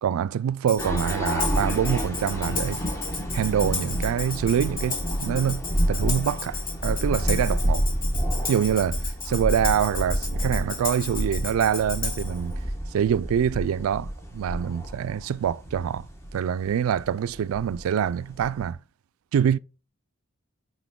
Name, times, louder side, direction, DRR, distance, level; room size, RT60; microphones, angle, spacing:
voice 1, 0.0-2.8 3.3-7.9 8.5-12.6 12.9-16.1 16.3-18.8 19.3-19.6, right 8 dB, 85° right, 0.3 m, -25 dB
Tambourine, 0.7-12.4, left 4 dB, 45° left, 2.0 m, -34 dB
sound 1, 0.8-18.7, equal, 15° left, 1.1 m, -29 dB
6.0 x 5.2 x 3.5 m
head